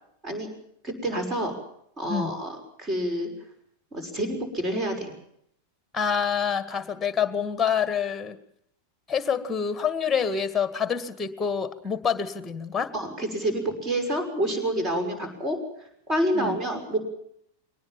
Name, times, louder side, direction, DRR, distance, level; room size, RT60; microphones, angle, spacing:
voice 1, 0.8-1.6 2.0-3.3 3.9-5.1 12.9-15.6 16.1-17.0, right 1 dB, 25° right, 6 dB, 6.1 m, -28 dB
voice 2, 5.9-8.4 9.1-12.9 16.3-16.6, left 7 dB, 15° left, 12 dB, 1.9 m, -27 dB
23.0 x 19.0 x 7.3 m, 0.72 s
figure-of-eight pair, 90°, 0 cm